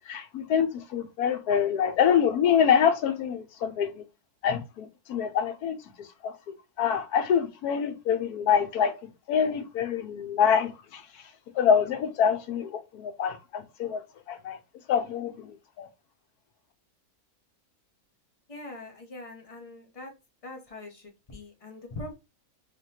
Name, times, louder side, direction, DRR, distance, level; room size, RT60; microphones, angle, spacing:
voice 1, 0.1-3.9 4.4-5.8 6.2-6.3 6.8-8.9 9.3-11.0 11.6-14.0 14.3-14.6 14.9-15.9, left 7 dB, 80° left, 1.2 m, -25 dB
voice 2, 18.5-20.1 20.4-22.1, left 2 dB, 30° left, 0.7 m, -42 dB
3.6 x 3.4 x 2.8 m
omnidirectional pair, 1.6 m